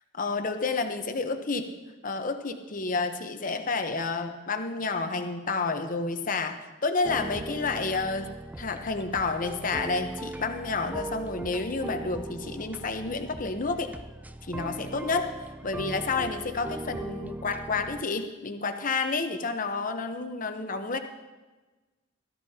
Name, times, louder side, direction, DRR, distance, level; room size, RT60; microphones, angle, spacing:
voice 1, 0.2-1.7 2.0-13.9 14.4-15.3 15.6-21.0, left 4 dB, 45° left, 7 dB, 0.9 m, -30 dB
sound 1, 7.0-18.0, right 2 dB, 10° right, 0.3 m, -39 dB
16.5 x 13.5 x 2.8 m, 1.2 s
head